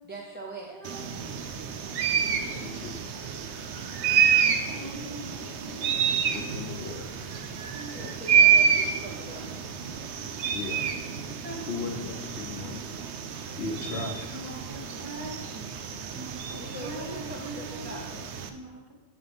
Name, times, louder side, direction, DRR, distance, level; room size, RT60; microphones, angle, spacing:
voice 1, 0.0-0.8 4.4-4.9 7.9-9.7 16.5-18.4, right 1 dB, 10° right, -4 dB, 0.6 m, -42 dB
voice 2, 0.7-1.3 4.7-6.5 7.7-8.1 8.5-9.5 11.4-12.5 14.3-18.0 18.5-18.8, right 1 dB, 50° right, -2 dB, 1.6 m, -43 dB
sound 1, 0.8-18.5, right 7 dB, 80° right, 0.9 m, -28 dB
voice 3, 2.2-3.0 4.5-4.6 6.0-7.2 10.5-10.8 11.7-12.8 13.6-14.3, left 4 dB, 70° left, 4 dB, 1.0 m, -37 dB
11.0 x 3.9 x 3.5 m, 1.1 s
omnidirectional pair, 1.1 m